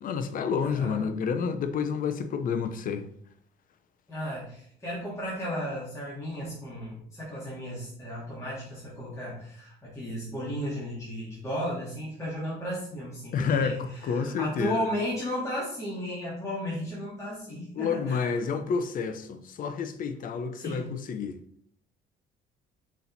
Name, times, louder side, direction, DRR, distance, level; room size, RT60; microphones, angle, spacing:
voice 1, 0.0-3.0 13.3-14.8 17.8-21.4, left 6 dB, 55° left, 0.8 m, -29 dB
voice 2, 0.6-1.1 4.1-18.4 20.5-20.9, equal, 15° left, 2.9 m, -34 dB
6.2 x 4.2 x 4.2 m
cardioid pair, 110°, 17 cm